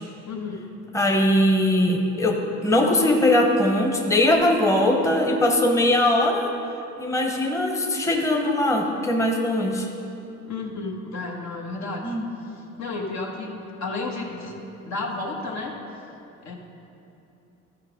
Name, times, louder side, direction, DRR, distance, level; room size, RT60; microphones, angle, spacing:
voice 1, 0.3-0.6 10.5-12.1 12.8-13.5 13.8-14.6 14.8-15.8 16.4-16.5, left 3 dB, 65° left, 0 dB, 1.4 m, -31 dB
voice 2, 0.9-2.4 2.6-6.5 7.0-9.9 12.0-12.3, left 1 dB, 10° left, 1 dB, 0.9 m, -20 dB
12.5 x 4.9 x 5.0 m, 2.8 s
cardioid pair, 90°, 30 cm